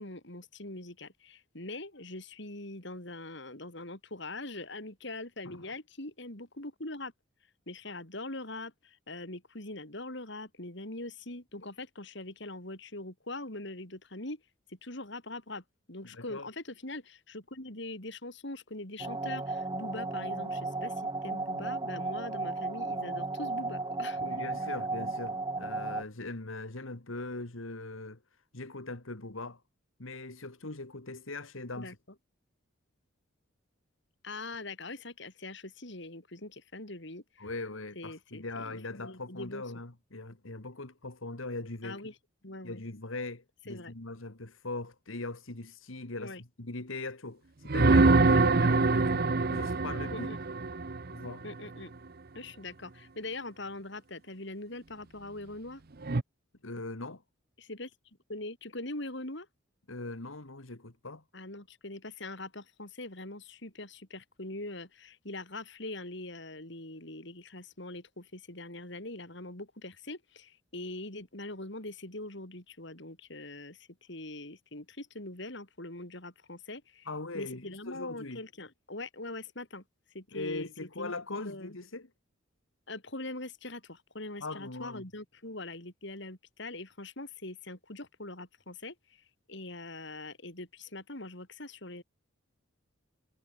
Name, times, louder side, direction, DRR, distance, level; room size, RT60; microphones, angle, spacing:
voice 1, 0.0-7.1 7.7-14.4 14.7-20.9 21.2-24.3 31.8-31.9 34.2-37.5 38.0-39.6 41.8-42.1 42.4-42.8 43.7-43.9 46.2-46.4 48.3-48.4 50.1-50.4 51.4-51.9 52.3-55.8 57.6-57.9 58.3-59.5 61.3-77.1 77.3-79.8 80.1-80.7 81.0-81.7 82.9-89.2 89.5-92.0, left 2 dB, 60° left, 4.4 m, -42 dB
voice 2, 16.0-16.5 24.2-28.2 28.5-29.6 30.0-32.0 37.4-42.0 42.6-50.3 51.1-51.4 56.6-57.2 59.9-61.2 77.1-78.4 80.3-82.1 84.4-85.0, left 2 dB, 75° left, 2.2 m, -40 dB
sound 1, 19.0-26.0, right 3 dB, 20° right, 0.9 m, -34 dB
sound 2, 47.7-51.5 56.0-56.2, right 3 dB, 50° right, 0.8 m, -24 dB
head